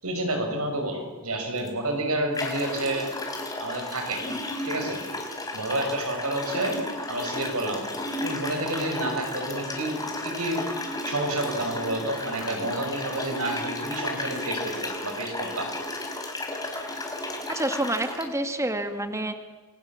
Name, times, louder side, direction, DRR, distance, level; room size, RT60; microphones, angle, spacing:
voice 1, 0.0-3.1 3.6-4.2 4.6-5.0 5.5-6.8 7.1-7.8 8.2-10.6 11.0-15.7, right 1 dB, 75° right, 4 dB, 6.4 m, -29 dB
sound 1, 1.6-1.7 2.3-18.3, left 2 dB, 15° left, 4.8 m, -33 dB
voice 2, 17.5-19.3, right 1 dB, 15° right, 7 dB, 1.8 m, -28 dB
30.0 x 23.5 x 7.5 m, 1.4 s
head